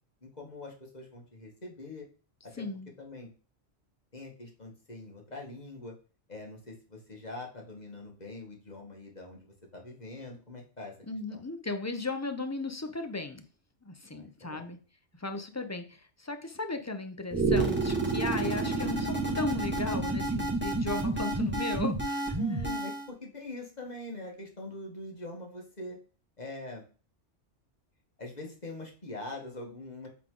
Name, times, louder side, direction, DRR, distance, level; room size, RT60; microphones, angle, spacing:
voice 1, 0.2-2.1 2.4-2.6 3.0-3.3 4.1-5.9 6.3-9.5 9.7-10.9 11.3-11.4 14.1-14.6 22.4-26.0 26.4-26.8 28.2-30.1, left 2 dB, 35° left, 0 dB, 1.8 m, -43 dB
voice 2, 2.5-2.9 11.0-13.4 13.8-14.8 15.2-22.7, left 3 dB, 15° left, 7 dB, 0.6 m, -36 dB
sound 1, 17.3-23.1, right 3 dB, 10° right, 1.9 m, -29 dB
8.0 x 4.0 x 3.8 m, 0.38 s
omnidirectional pair, 1.3 m